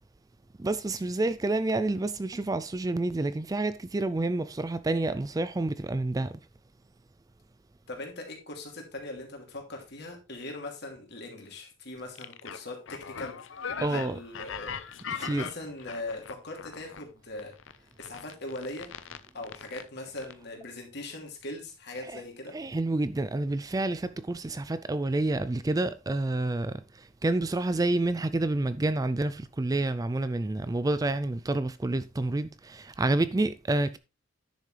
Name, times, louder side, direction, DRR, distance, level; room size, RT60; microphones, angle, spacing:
voice 1, 0.6-6.4 13.8-14.2 15.2-15.5 22.0-34.0, right 2 dB, 20° right, 0.3 m, -29 dB
voice 2, 7.9-13.6 13.9-14.8 15.1-17.5 18.0-18.9 19.3-22.5, left 2 dB, 55° left, 2.8 m, -40 dB
sound 1, 12.1-17.0 17.4-19.8 20.2-20.3, left 7 dB, 70° left, 0.6 m, -39 dB
10.5 x 6.7 x 3.3 m
head